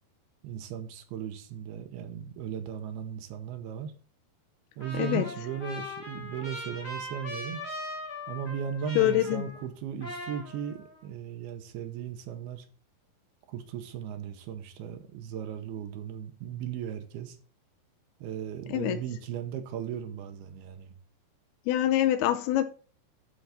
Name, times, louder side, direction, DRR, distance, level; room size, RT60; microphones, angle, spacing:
voice 1, 0.4-3.9 4.8-7.6 8.3-12.7 13.5-17.4 18.2-21.0, right 8 dB, 75° right, 2.7 m, -37 dB
Trumpet, 4.8-9.7 10.0-11.0, left 1 dB, 20° left, 1.9 m, -40 dB
voice 2, 5.0-5.3 9.0-9.4 18.7-19.0 21.7-22.6, left 13 dB, 80° left, 2.3 m, -25 dB
11.5 x 3.9 x 5.8 m
omnidirectional pair, 5.0 m